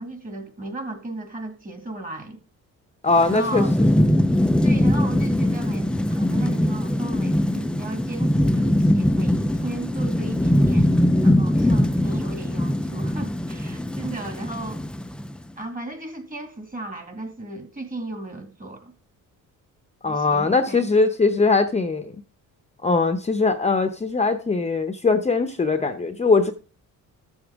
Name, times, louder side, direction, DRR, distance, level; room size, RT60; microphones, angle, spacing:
voice 1, 0.0-2.4 3.3-3.8 4.6-11.0 11.2-14.8 15.6-18.9 20.1-20.9, right 2 dB, 25° right, 2.2 m, -35 dB
voice 2, 3.0-3.6 20.0-22.1 22.8-26.5, left 3 dB, 20° left, 0.8 m, -21 dB
Thunderstorm / Rain, 3.1-15.4, left 1 dB, 5° left, 0.4 m, -21 dB
13.0 x 7.0 x 3.5 m
cardioid pair, 105°, 34 cm